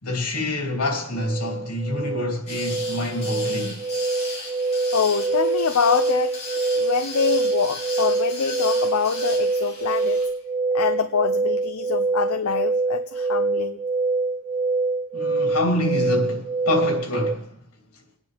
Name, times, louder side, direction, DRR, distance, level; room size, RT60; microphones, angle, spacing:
voice 1, 0.0-3.8 15.1-17.5, left 1 dB, 85° left, 3.0 m, -26 dB
sound 1, 0.8-17.3, right 3 dB, 25° right, 0.5 m, -25 dB
sound 2, 2.5-10.3, left 3 dB, 35° left, 5.8 m, -36 dB
voice 2, 4.9-6.3 6.7-10.2 10.7-13.8, left 6 dB, 70° left, 0.6 m, -25 dB
24.5 x 9.7 x 3.4 m
head